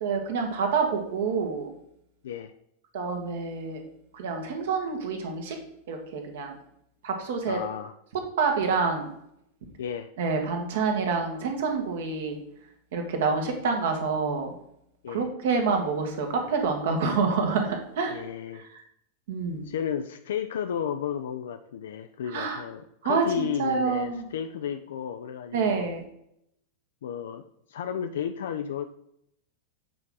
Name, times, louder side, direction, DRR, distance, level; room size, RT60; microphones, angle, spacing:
voice 1, 0.0-1.7 2.9-3.8 4.1-5.6 5.9-6.6 7.0-7.6 8.1-9.1 10.2-12.4 12.9-14.5 15.1-18.2 18.5-18.8 19.3-19.7 22.3-22.6 23.0-24.2 25.5-26.0, right 5 dB, 55° right, 3 dB, 1.4 m, -27 dB
voice 2, 7.5-7.9 9.8-10.1 15.0-15.3 18.1-18.7 19.6-25.9 27.0-27.4 27.7-28.9, left 8 dB, 60° left, 7 dB, 0.4 m, -33 dB
7.6 x 4.6 x 3.9 m, 0.74 s
figure-of-eight pair, 90°, 0 cm